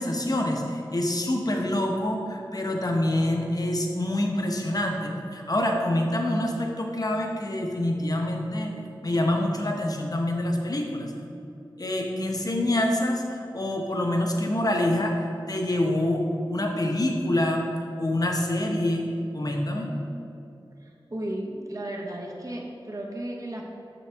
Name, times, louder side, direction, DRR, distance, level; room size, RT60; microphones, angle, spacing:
voice 1, 0.0-8.7 9.0-11.1 11.8-17.7 18.0-19.1 19.3-19.9, left 1 dB, 45° left, 1 dB, 0.9 m, -26 dB
voice 2, 20.8-23.6, right 1 dB, 40° right, -1 dB, 1.0 m, -35 dB
7.1 x 6.2 x 3.5 m, 2.7 s
wide cardioid pair, 65°, 9 cm